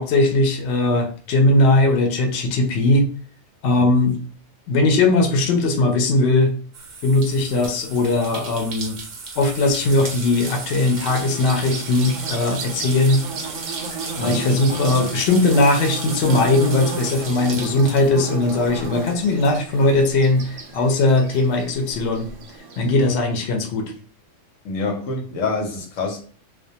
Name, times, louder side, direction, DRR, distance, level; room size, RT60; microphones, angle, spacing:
voice 1, 0.0-3.1 3.6-4.2 4.7-6.5 7.0-9.0 9.4-13.2 14.2-22.3 22.8-23.9, left 2 dB, 70° left, 0.8 m, -19 dB
sound 1, 6.7-20.8 21.1-22.3, right 4 dB, 60° right, 0.5 m, -35 dB
Bird / Buzz, 10.0-22.9, right 4 dB, 90° right, 1.0 m, -34 dB
voice 2, 24.6-26.2, left 3 dB, 90° left, 1.0 m, -26 dB
2.3 x 2.2 x 2.7 m
omnidirectional pair, 1.3 m